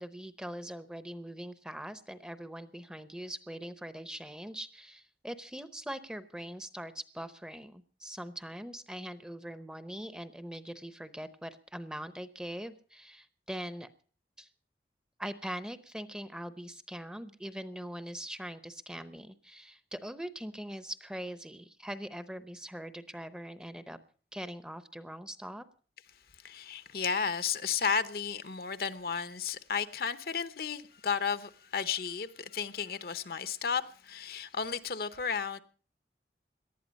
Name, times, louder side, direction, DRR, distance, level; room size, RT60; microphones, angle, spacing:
voice 1, 0.0-13.9 14.4-14.5 15.2-24.0 24.3-25.6, equal, 5° right, 0.7 m, -42 dB
voice 2, 26.4-35.6, left 6 dB, 55° left, 0.9 m, -33 dB
18.5 x 12.0 x 5.3 m
head